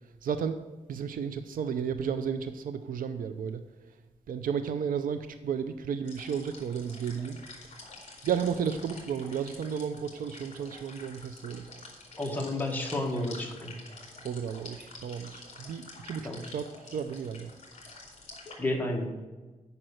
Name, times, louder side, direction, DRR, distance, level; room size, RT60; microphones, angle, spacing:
voice 1, 0.2-0.6 0.9-3.6 4.3-7.4 8.2-11.6 14.2-16.6 16.9-17.5, right 7 dB, 70° right, 10 dB, 0.5 m, -33 dB
sound 1, 6.1-18.6, left 3 dB, 50° left, 2.8 m, -48 dB
voice 2, 12.2-13.8 16.2-16.4 18.6-19.1, left 1 dB, 10° left, 0 dB, 1.6 m, -31 dB
8.9 x 5.4 x 6.4 m, 1.2 s
wide cardioid pair, 120°, 15 cm